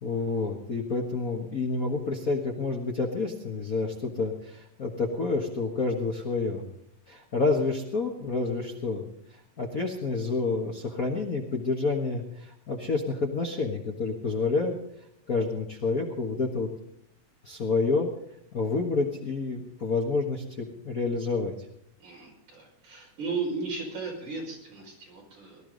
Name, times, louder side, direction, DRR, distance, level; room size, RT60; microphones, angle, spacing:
voice 1, 0.0-6.7 7.1-9.1 9.6-14.7 15.3-16.7 17.4-18.1 18.5-21.5, left 3 dB, 40° left, 1 dB, 1.3 m, -29 dB
voice 2, 22.0-25.6, right 4 dB, 80° right, -1 dB, 6.6 m, -35 dB
19.0 x 13.0 x 3.9 m, 0.74 s
omnidirectional pair, 3.4 m